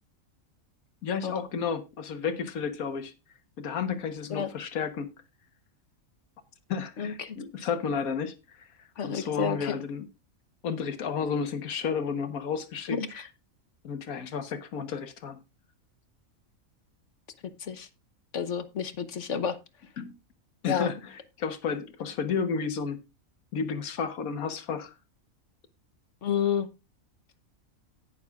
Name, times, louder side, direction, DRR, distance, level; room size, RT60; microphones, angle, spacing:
voice 1, 1.0-3.1 3.6-5.1 6.7-8.6 9.0-10.1 10.6-13.0 13.8-15.4 20.0-20.1 20.6-23.0 23.5-24.9, left 6 dB, 85° left, 1.6 m, -32 dB
voice 2, 7.0-7.4 9.0-9.8 12.9-13.3 17.6-17.9 18.3-19.6 20.7-20.9 26.2-26.7, left 7 dB, 60° left, 1.2 m, -30 dB
18.5 x 6.6 x 2.4 m
omnidirectional pair, 1.4 m